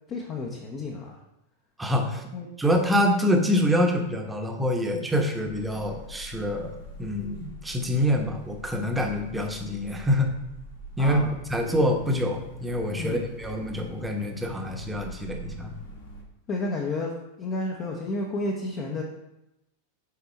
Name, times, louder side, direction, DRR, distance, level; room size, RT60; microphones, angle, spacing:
voice 1, 0.1-1.2 2.3-2.5 11.0-11.4 11.6-11.7 13.0-13.2 16.5-17.1 17.4-19.0, left 2 dB, 30° left, 0 dB, 1.0 m, -31 dB
voice 2, 1.8-2.2 2.6-10.3 11.0-11.2 11.5-15.7, equal, 10° right, 3 dB, 1.1 m, -26 dB
sound 1, 5.4-16.2, equal, 55° left, 1.9 m, -44 dB
6.9 x 4.6 x 4.5 m, 0.89 s
figure-of-eight pair, 90°, 0 cm